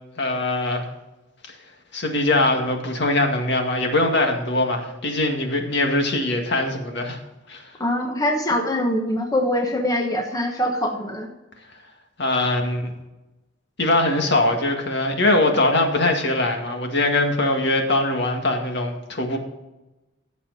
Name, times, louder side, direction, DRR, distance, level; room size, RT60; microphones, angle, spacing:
voice 1, 0.2-0.8 1.9-7.2 7.5-7.6 12.2-12.8 13.8-19.4, left 2 dB, 60° left, 3 dB, 2.0 m, -22 dB
voice 2, 7.8-11.3, left 1 dB, 20° left, 2 dB, 1.1 m, -23 dB
16.0 x 7.2 x 4.2 m, 1.0 s
head